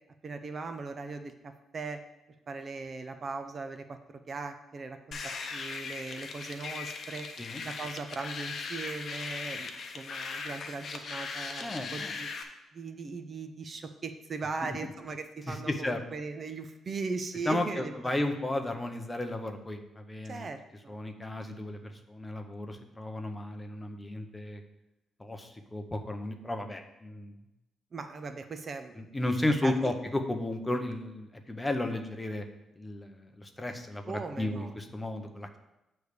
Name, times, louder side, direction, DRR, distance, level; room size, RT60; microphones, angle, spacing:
voice 1, 0.2-2.0 2.5-7.3 7.6-12.3 12.7-17.9 20.2-20.9 27.9-28.9 29.6-29.9 34.1-34.7, right 4 dB, 35° right, 8 dB, 0.5 m, -39 dB
sound 1, 5.1-12.4, left 4 dB, 45° left, 0.8 m, -39 dB
voice 2, 11.6-12.1 15.5-16.0 17.5-20.5 20.9-24.6 25.2-27.3 29.0-32.4 32.8-35.6, left 1 dB, 15° left, 5 dB, 0.6 m, -34 dB
8.4 x 3.3 x 6.6 m, 0.97 s
cardioid pair, 135°, 0 cm